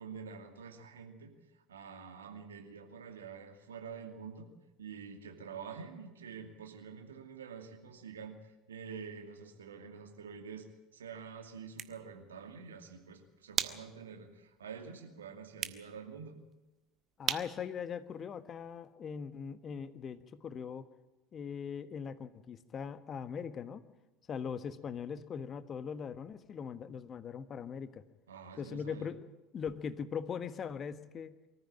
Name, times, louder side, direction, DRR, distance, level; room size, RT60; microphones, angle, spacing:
voice 1, 0.0-1.3 1.7-4.5 4.8-10.7 10.9-16.4 28.3-29.1, right 6 dB, 75° right, 5 dB, 2.4 m, -47 dB
sound 1, 11.5-18.9, right 9 dB, 40° right, 1.3 m, -43 dB
voice 2, 17.2-20.9 21.3-23.8 24.3-28.0 28.6-29.2 29.5-31.4, left 7 dB, 35° left, 12 dB, 1.4 m, -40 dB
23.5 x 14.5 x 8.8 m, 1.1 s
figure-of-eight pair, 70°, 0 cm